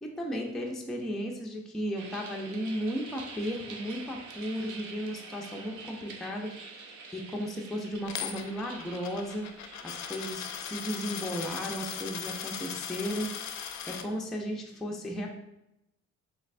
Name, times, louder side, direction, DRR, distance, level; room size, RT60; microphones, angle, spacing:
voice 1, 0.0-9.5 9.8-13.3 13.9-15.3, equal, ahead, 0 dB, 0.4 m, -35 dB
sound 1, 2.0-10.3, right 4 dB, 70° right, 0.5 m, -46 dB
Coin (dropping), 8.1-14.0, left 8 dB, 65° left, 0.4 m, -38 dB
3.3 x 3.1 x 2.4 m, 0.84 s
cardioid pair, 90°, 30 cm